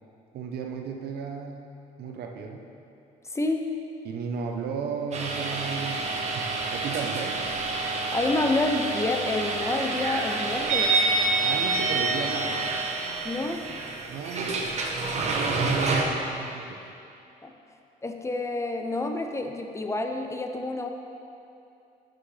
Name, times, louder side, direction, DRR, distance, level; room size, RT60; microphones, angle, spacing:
voice 1, 0.3-1.7 2.0-2.7 4.0-7.4 11.4-12.6 14.1-14.9 15.1-16.9, right 6 dB, 70° right, 3 dB, 0.9 m, -34 dB
voice 2, 3.3-3.7 8.1-11.0 13.2-13.6 17.4-17.5 18.0-20.9, left 2 dB, 15° left, 4 dB, 0.5 m, -28 dB
sound 1, 5.1-16.0, right 3 dB, 40° right, 1.0 m, -28 dB
11.0 x 6.0 x 3.3 m, 2.7 s
cardioid pair, 110°, 17 cm